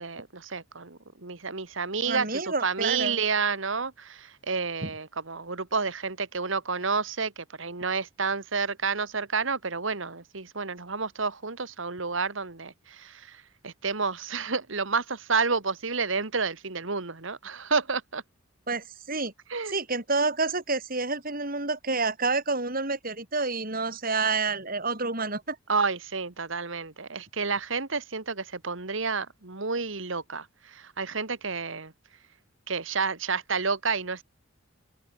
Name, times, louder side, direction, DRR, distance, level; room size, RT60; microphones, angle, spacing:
voice 1, 0.0-18.2 19.5-19.8 25.7-31.9 32.7-34.2, right 4 dB, 65° right, 1.8 m, -30 dB
voice 2, 2.1-3.2 4.8-4.9 18.7-19.3 19.7-25.6, right 3 dB, 45° right, 6.3 m, -29 dB
head